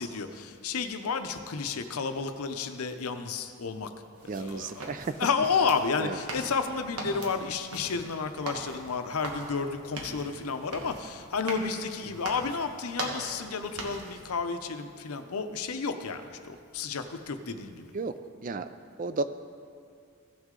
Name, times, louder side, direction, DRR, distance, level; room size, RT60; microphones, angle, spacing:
voice 1, 0.0-3.9 4.4-4.9 5.2-17.8, left 5 dB, 80° left, 8 dB, 0.6 m, -31 dB
sound 1, 4.2-14.3, right 2 dB, 90° right, 1.4 m, -41 dB
voice 2, 4.3-5.1 6.0-6.2 12.1-12.2 17.5-17.6 17.9-18.2 18.4-18.7 19.0-19.2, right 3 dB, 35° right, 11 dB, 0.3 m, -33 dB
16.0 x 6.3 x 3.8 m, 2.2 s
head